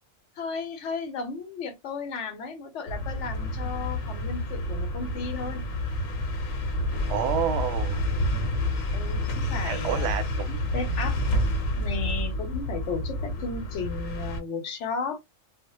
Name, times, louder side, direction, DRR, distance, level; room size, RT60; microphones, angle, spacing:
voice 1, 0.4-5.6 8.9-10.2 10.7-11.2 11.7-15.2, left 4 dB, 70° left, 0.9 m, -34 dB
sound 1, 2.9-14.4, left 1 dB, 85° left, 1.0 m, -29 dB
voice 2, 7.1-8.0 9.6-10.6 12.0-12.2, right 9 dB, 65° right, 0.8 m, -29 dB
2.1 x 2.1 x 2.9 m
omnidirectional pair, 1.4 m